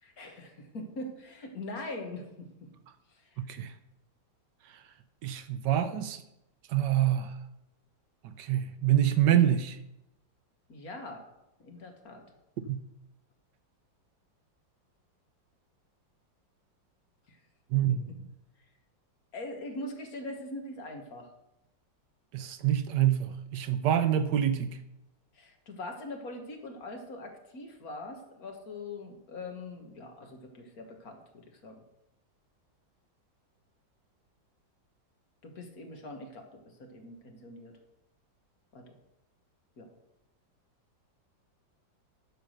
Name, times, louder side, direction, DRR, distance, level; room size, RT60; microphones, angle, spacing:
voice 1, 0.0-2.5 10.7-11.2 11.6-12.2 17.3-17.4 17.9-18.0 19.3-21.3 25.4-31.8 35.4-37.7 38.7-38.9 39.8-39.9, left 2 dB, 55° left, 3 dB, 1.9 m, -42 dB
voice 2, 3.4-3.7 5.2-6.2 6.7-7.3 8.2-9.8 12.7-12.8 17.7-18.0 22.3-24.8, right 11 dB, 75° right, 11 dB, 1.2 m, -26 dB
10.5 x 6.1 x 6.5 m, 0.88 s
omnidirectional pair, 2.0 m